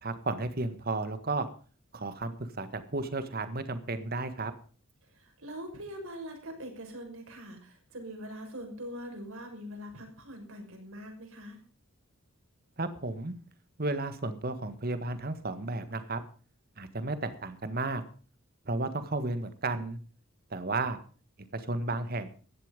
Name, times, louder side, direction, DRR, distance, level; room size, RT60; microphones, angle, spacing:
voice 1, 0.0-1.5 1.9-4.5 12.8-13.3 13.8-16.2 16.8-18.0 18.7-20.0 20.5-21.0 21.5-22.3, right 2 dB, 45° right, 11 dB, 1.7 m, -33 dB
voice 2, 5.1-11.6, equal, 75° right, 3 dB, 6.1 m, -43 dB
16.0 x 11.5 x 5.2 m, 0.39 s
head